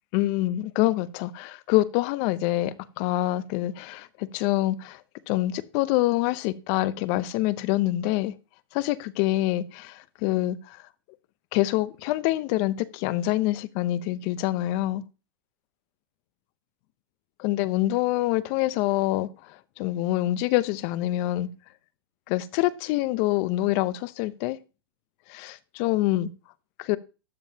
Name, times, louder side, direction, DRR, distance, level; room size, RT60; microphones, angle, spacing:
voice 1, 0.1-5.0 5.3-8.3 8.7-10.8 11.5-15.0 17.4-19.3 19.8-21.5 22.3-24.6 25.3-26.3 26.8-27.0, left 16 dB, 45° left, 0.7 m, -26 dB
12.5 x 7.2 x 2.9 m
hypercardioid pair, 115°, 13 cm